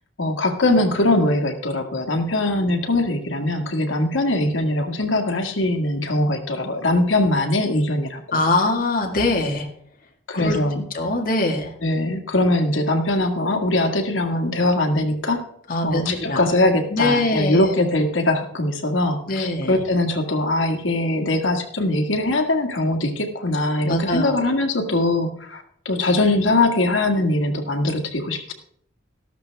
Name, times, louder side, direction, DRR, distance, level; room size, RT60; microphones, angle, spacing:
voice 1, 0.2-8.4 10.3-10.8 11.8-15.4 15.8-28.5, left 2 dB, 80° left, 5 dB, 1.9 m, -21 dB
voice 2, 8.3-9.7 10.3-10.6 10.9-11.7 15.7-16.4 16.9-17.7 19.3-19.8 23.9-24.5, left 2 dB, 45° left, 1 dB, 1.9 m, -22 dB
13.5 x 12.5 x 3.5 m, 0.67 s
head